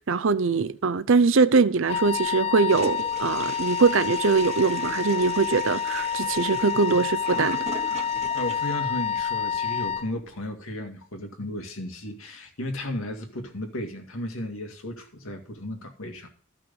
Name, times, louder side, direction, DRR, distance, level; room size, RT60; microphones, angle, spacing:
voice 1, 0.1-7.6, right 4 dB, 65° right, 0.6 m, -22 dB
Wind instrument woodwind instrument, 1.9-10.1, left 7 dB, 30° left, 0.4 m, -28 dB
Toilet flush, 2.7-8.7, right 3 dB, 35° right, 1.1 m, -39 dB
voice 2, 8.3-16.3, left 1 dB, 85° left, 2.1 m, -34 dB
13.5 x 5.9 x 5.4 m
head